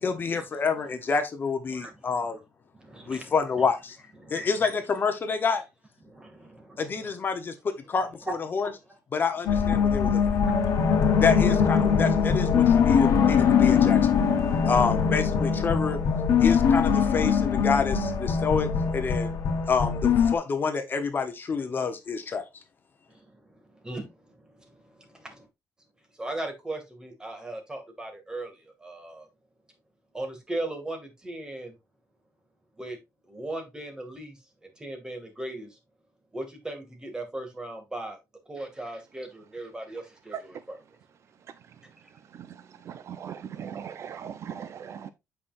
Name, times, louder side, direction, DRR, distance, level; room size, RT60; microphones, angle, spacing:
voice 1, 0.0-2.4 3.1-4.0 4.3-5.6 6.8-8.7 9.1-10.2 11.2-14.0 14.7-16.0 16.4-18.7 18.9-19.3 19.7-22.4, left 5 dB, 35° left, 1.1 m, -28 dB
voice 2, 2.8-3.7 4.2-4.5 6.0-6.8 8.3-8.4 8.6-8.7 23.8-24.1 25.1-25.4 26.2-28.5 28.8-29.3 30.1-31.7 32.8-33.0 33.3-34.3 34.8-35.7 36.3-38.2 38.5-40.8, right 2 dB, 15° right, 2.3 m, -37 dB
sound 1, 9.5-20.3, left 6 dB, 60° left, 1.4 m, -22 dB
voice 3, 42.9-45.1, right 8 dB, 55° right, 0.6 m, -38 dB
8.4 x 5.7 x 2.6 m
cardioid pair, 130°, 6 cm